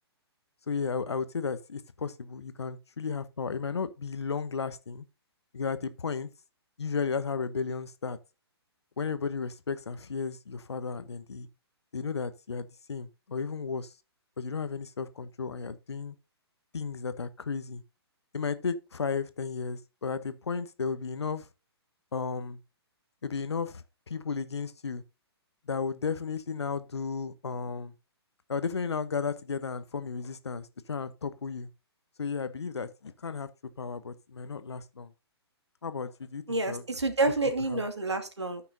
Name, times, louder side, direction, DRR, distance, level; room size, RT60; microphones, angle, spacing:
voice 1, 0.7-5.0 5.5-6.3 6.8-8.2 9.0-11.5 11.9-13.9 14.4-16.1 16.7-17.8 18.3-21.5 22.1-22.6 23.2-25.0 25.7-27.9 28.5-31.7 32.2-33.5 33.8-35.1 35.8-36.8 37.7-37.8, left 5 dB, 75° left, 1.0 m, -34 dB
voice 2, 36.5-38.6, right 2 dB, 85° right, 2.1 m, -28 dB
13.5 x 6.0 x 2.7 m
figure-of-eight pair, 125°, 14 cm